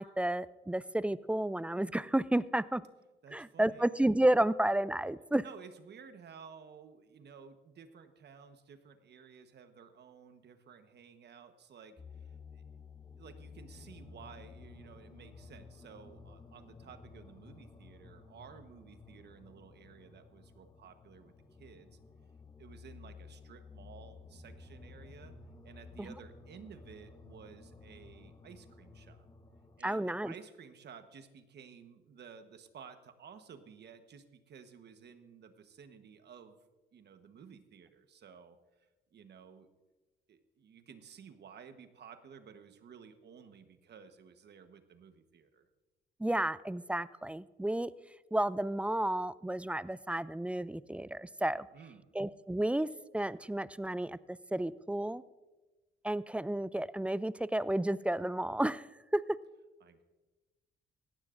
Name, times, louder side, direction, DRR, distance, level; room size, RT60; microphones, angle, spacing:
voice 1, 0.0-2.8 3.3-5.4 26.0-26.1 29.8-30.3 46.2-47.9 48.3-51.7 52.1-52.9 53.1-55.2 56.0-58.9 59.1-59.4, right 1 dB, 5° right, 18 dB, 0.3 m, -31 dB
voice 2, 3.2-3.8 5.4-12.6 13.2-21.3 21.6-22.0 22.6-25.3 25.6-29.3 29.8-36.6 36.9-39.7 40.3-45.7 51.7-52.1 59.8-60.0, right 6 dB, 60° right, 9 dB, 1.2 m, -54 dB
sound 1, 12.0-29.8, left 4 dB, 20° left, 0.8 m, -54 dB
18.0 x 14.5 x 2.6 m, 1.2 s
cardioid pair, 90°, 20 cm